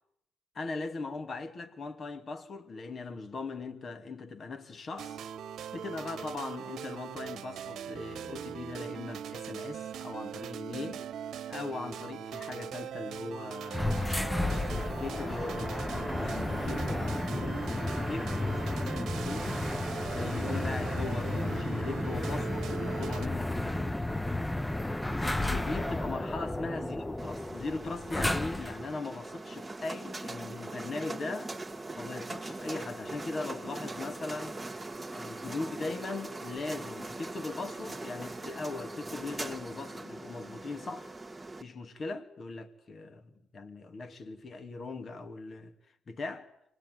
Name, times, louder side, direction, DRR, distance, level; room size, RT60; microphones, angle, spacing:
voice 1, 0.5-5.2 5.7-11.1 11.5-13.9 14.4-19.6 20.1-24.0 25.5-31.5 32.0-34.6 35.1-41.1 41.6-45.7 46.1-46.5, left 3 dB, 45° left, 3.1 m, -39 dB
sound 1, 5.0-23.3, right 9 dB, 70° right, 1.1 m, -41 dB
sound 2, 13.7-28.9, left 1 dB, 10° left, 1.1 m, -32 dB
sound 3, 27.2-41.6, right 2 dB, 15° right, 2.3 m, -41 dB
26.0 x 19.5 x 9.7 m
supercardioid pair, 70°, 0 cm